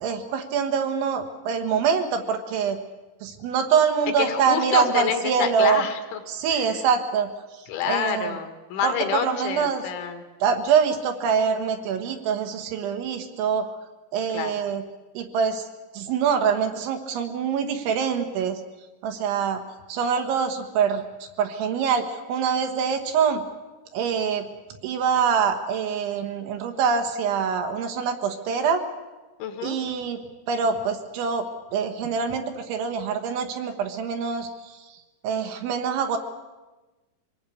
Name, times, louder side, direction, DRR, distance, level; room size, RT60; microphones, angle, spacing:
voice 1, 0.0-2.8 3.2-5.8 6.3-7.3 7.9-8.4 8.8-9.8 10.4-13.7 14.1-14.8 15.2-15.7 16.0-18.6 19.0-19.6 19.9-21.0 21.4-23.4 23.9-24.5 24.8-28.8 29.6-30.2 30.5-31.4 31.7-34.5 35.2-36.2, right 6 dB, 70° right, 6 dB, 3.6 m, -24 dB
voice 2, 4.2-6.2 6.5-6.8 7.7-10.2 14.3-14.6 29.4-29.8, left 8 dB, 70° left, 7 dB, 3.7 m, -28 dB
24.5 x 19.5 x 8.4 m, 1.1 s
omnidirectional pair, 6.0 m